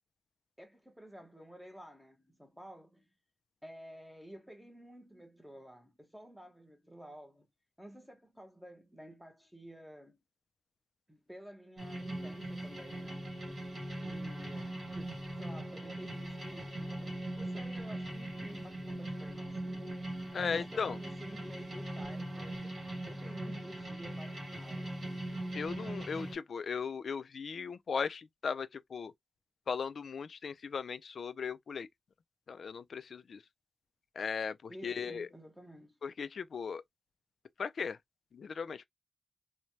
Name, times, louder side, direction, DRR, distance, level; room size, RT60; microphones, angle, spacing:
voice 1, 0.6-3.1 3.6-7.5 7.8-10.2 11.1-13.3 14.0-19.9 20.4-25.2 34.7-36.0, equal, 5° right, 0.9 m, -52 dB
sound 1, 11.8-26.4, right 1 dB, 50° right, 1.6 m, -40 dB
voice 2, 20.3-21.0 25.5-29.1 29.7-31.9 32.5-33.4 34.2-35.3 36.0-36.8 37.6-38.0 38.3-38.8, left 6 dB, 70° left, 0.3 m, -37 dB
3.1 x 2.2 x 2.7 m
wide cardioid pair, 155°, 0 cm